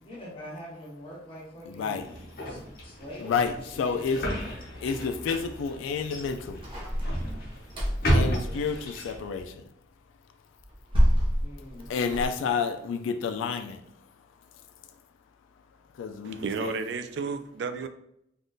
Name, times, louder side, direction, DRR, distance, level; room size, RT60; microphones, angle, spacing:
voice 1, 0.0-4.6 8.4-8.9 11.4-12.2, equal, 30° left, -5 dB, 1.0 m, -45 dB
sound 1, 1.9-9.4, equal, 50° left, 0.7 m, -32 dB
voice 2, 3.2-4.3 4.8-6.7 8.1-9.6 11.9-13.8 15.9-16.8, left 5 dB, 85° left, 8 dB, 0.3 m, -30 dB
sound 2, 6.6-8.2 10.6-12.3, equal, 25° right, 0.7 m, -26 dB
voice 3, 16.2-17.9, right 5 dB, 60° right, 9 dB, 0.3 m, -32 dB
3.5 x 2.4 x 2.6 m, 0.75 s
head